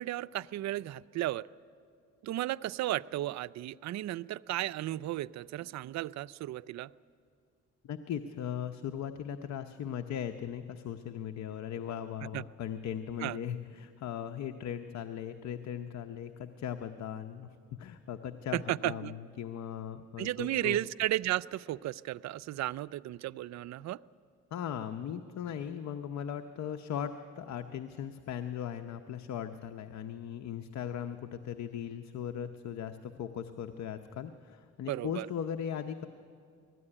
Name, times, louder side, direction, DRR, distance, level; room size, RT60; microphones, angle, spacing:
voice 1, 0.0-1.5 2.2-6.9 12.3-12.4 13.2-13.4 18.5-19.1 20.2-24.0 34.9-35.3, right 15 dB, 65° right, 17 dB, 0.4 m, -34 dB
voice 2, 7.8-20.8 24.5-36.1, left 9 dB, 65° left, 8 dB, 0.8 m, -38 dB
19.5 x 14.0 x 9.9 m, 2.3 s
cardioid pair, 90°, 30 cm